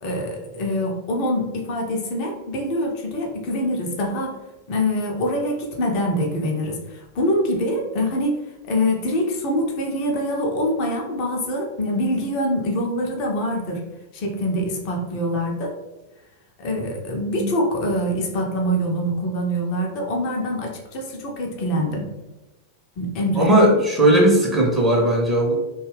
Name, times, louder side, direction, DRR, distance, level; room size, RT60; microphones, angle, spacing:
voice 1, 0.0-4.4 4.7-13.8 14.1-15.7 16.6-22.1 23.0-23.5, equal, 45° left, 1 dB, 0.6 m, -24 dB
voice 2, 23.4-25.6, right 1 dB, 15° right, -2 dB, 0.7 m, -17 dB
2.7 x 2.3 x 3.2 m, 1.0 s
figure-of-eight pair, 90°, 0 cm